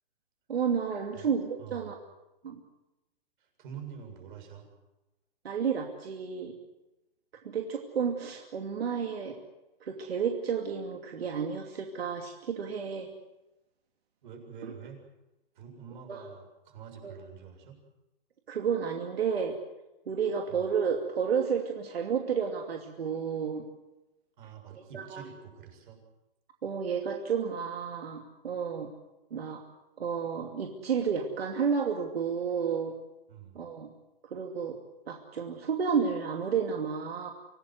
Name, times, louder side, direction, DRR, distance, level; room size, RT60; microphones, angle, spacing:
voice 1, 0.5-2.0 2.4-2.6 5.4-6.6 7.4-9.4 9.8-13.1 14.6-14.7 16.1-16.2 17.0-17.1 18.5-19.6 20.1-23.6 24.9-25.2 26.6-28.9 29.3-29.6 30.0-32.9 33.5-33.9 34.2-34.8 35.1-37.3, right 6 dB, 85° right, 2 dB, 2.7 m, -31 dB
voice 2, 1.6-1.9 3.4-4.7 14.2-15.0 15.5-17.8 20.5-20.7 24.4-26.0 33.3-33.6, right 7 dB, 55° right, 4 dB, 7.2 m, -47 dB
26.0 x 18.0 x 7.9 m, 0.99 s
hypercardioid pair, 155°, 30 cm